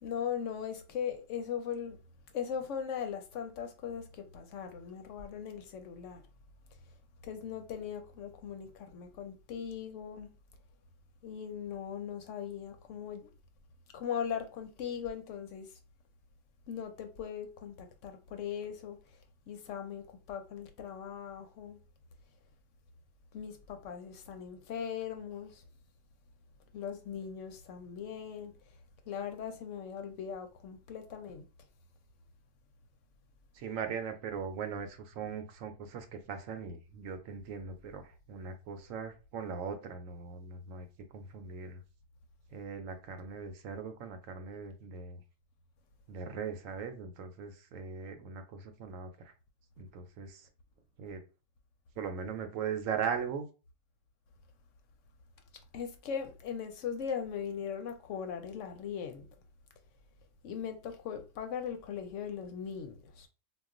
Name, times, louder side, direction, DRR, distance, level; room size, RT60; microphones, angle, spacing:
voice 1, 0.0-2.0 2.3-6.2 7.2-10.3 11.2-13.3 13.9-15.7 16.7-19.0 19.5-21.8 23.3-25.6 26.7-28.5 29.1-31.4 55.7-59.3 60.4-63.3, left 7 dB, 70° left, 0.8 m, -39 dB
voice 2, 33.5-40.9 41.1-41.8 42.5-45.2 46.1-49.3 49.8-50.5 51.0-51.2 52.0-53.5, right 6 dB, 75° right, 0.9 m, -39 dB
2.3 x 2.3 x 3.6 m
omnidirectional pair, 1.4 m